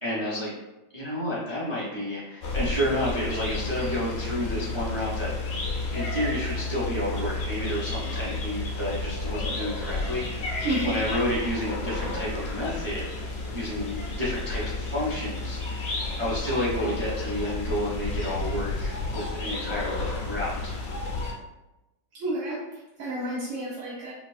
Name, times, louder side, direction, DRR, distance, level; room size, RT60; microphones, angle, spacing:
voice 1, 0.0-0.5 0.9-5.3 5.9-13.1 13.5-20.7, equal, 30° right, -8 dB, 0.5 m, -30 dB
sound 1, 2.4-21.3, left 3 dB, 80° left, 0.6 m, -32 dB
voice 2, 10.6-11.0 22.1-24.1, right 1 dB, 60° right, -7 dB, 0.8 m, -31 dB
4.1 x 2.3 x 2.5 m, 1.0 s
omnidirectional pair, 1.9 m